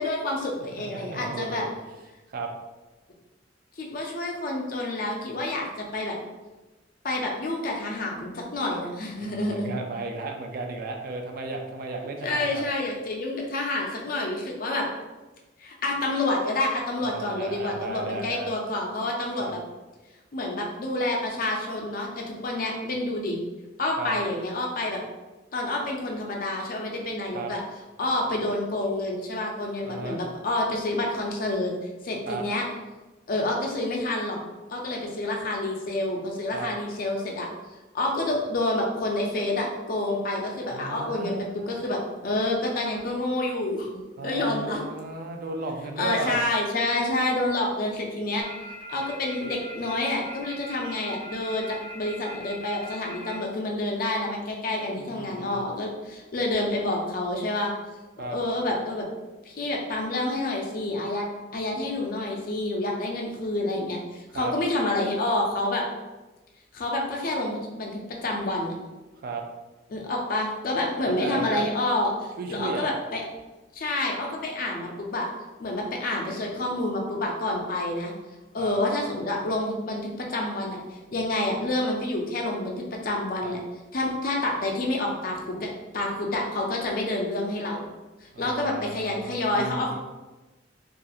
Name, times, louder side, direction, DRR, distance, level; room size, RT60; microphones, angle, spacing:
voice 1, 0.0-1.6 3.8-6.2 7.0-9.7 12.2-14.9 15.6-19.6 20.3-23.4 23.8-25.0 25.5-27.6 28.0-31.7 32.0-32.6 33.3-34.4 34.7-37.5 37.9-41.4 41.7-44.8 46.0-48.5 48.9-57.7 58.2-59.1 59.4-61.3 61.5-65.8 66.7-68.7 69.9-73.2 73.7-75.3 75.6-78.1 78.5-80.8 81.1-83.6 83.9-87.9 88.2-90.0, left 2 dB, 50° left, 0 dB, 0.4 m, -28 dB
voice 2, 0.8-1.7 2.3-2.5 9.2-12.6 17.0-18.5 19.4-19.5 24.0-24.2 27.3-27.5 29.8-30.2 32.3-32.4 36.5-36.7 40.7-41.8 44.2-46.4 55.0-55.6 58.2-58.4 64.3-64.5 69.2-69.4 71.1-71.6 72.4-72.9 78.6-78.7 83.4-83.5 88.3-90.0, right 3 dB, 50° right, 3 dB, 0.3 m, -34 dB
sound 1, 48.4-53.3, right 1 dB, 5° right, 1.1 m, -41 dB
2.7 x 2.4 x 2.3 m, 1.1 s
head